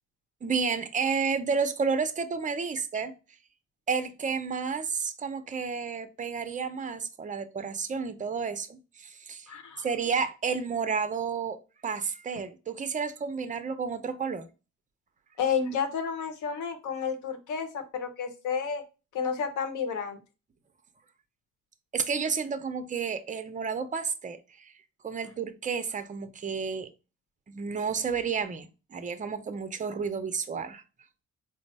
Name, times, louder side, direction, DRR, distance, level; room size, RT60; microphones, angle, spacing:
voice 1, 0.4-3.1 3.9-9.5 9.8-14.5 21.9-24.7 25.0-26.9 27.5-30.8, right 5 dB, 25° right, 0.5 m, -31 dB
voice 2, 9.5-10.1 15.4-18.8 19.1-20.2, left 6 dB, 80° left, 0.9 m, -31 dB
4.3 x 2.0 x 4.1 m
cardioid pair, 90°, 30 cm